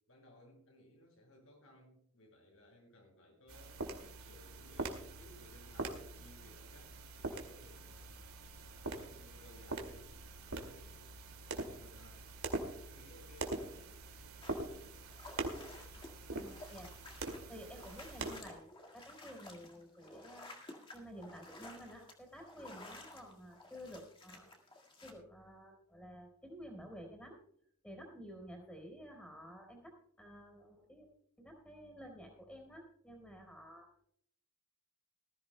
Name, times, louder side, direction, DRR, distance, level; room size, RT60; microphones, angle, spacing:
voice 1, 0.1-3.8 4.2-11.1 11.4-12.3 12.7-15.1, left 1 dB, 65° left, 0 dB, 5.8 m, -62 dB
sound 1, 3.5-18.4, right 2 dB, 75° right, 2.3 m, -44 dB
sound 2, 14.4-25.1, left 2 dB, 25° left, 1.8 m, -54 dB
voice 2, 16.3-16.9 17.5-20.5 20.9-24.5 25.0-27.4 27.8-31.1 31.4-34.1, equal, 5° left, 2 dB, 3.8 m, -52 dB
20.0 x 14.5 x 2.2 m, 0.68 s
head